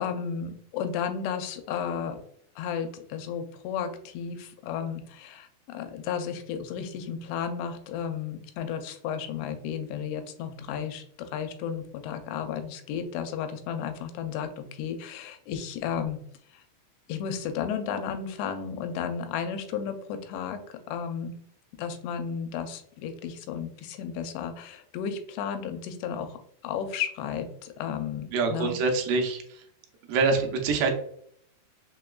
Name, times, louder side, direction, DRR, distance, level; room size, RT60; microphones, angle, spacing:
voice 1, 0.0-2.2 2.6-16.2 16.5-16.6 17.1-21.3 21.8-26.4 26.6-28.8, left 7 dB, 85° left, 7 dB, 2.6 m, -33 dB
voice 2, 28.3-29.6 30.1-30.9, right 4 dB, 85° right, 3 dB, 2.7 m, -25 dB
6.2 x 2.2 x 2.2 m, 0.65 s
omnidirectional pair, 4.7 m